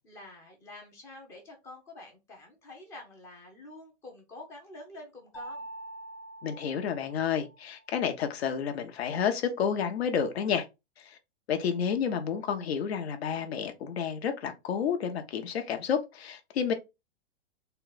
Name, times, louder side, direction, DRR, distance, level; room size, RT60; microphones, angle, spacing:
voice 1, 0.0-5.7, left 2 dB, 10° left, 0.5 m, -48 dB
Mallet percussion, 5.3-7.9, right 1 dB, 35° left, 1.3 m, -45 dB
voice 2, 6.4-10.7 11.0-11.2 11.5-16.7, left 7 dB, 75° left, 1.0 m, -30 dB
3.9 x 2.3 x 3.9 m
supercardioid pair, 175°, 32 cm